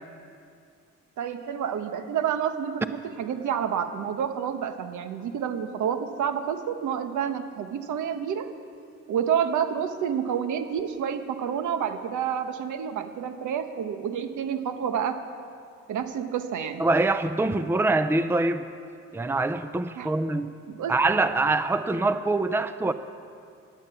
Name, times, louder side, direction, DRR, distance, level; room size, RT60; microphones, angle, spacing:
voice 1, 1.2-8.5 9.1-15.2 15.9-16.8 19.9-20.1 20.7-21.0, right 8 dB, 75° right, 8 dB, 1.2 m, -29 dB
voice 2, 16.8-18.7 19.1-20.5 20.9-22.9, right 2 dB, 10° right, 12 dB, 0.5 m, -24 dB
16.0 x 10.5 x 7.1 m, 2.3 s
cardioid pair, 90°, 30 cm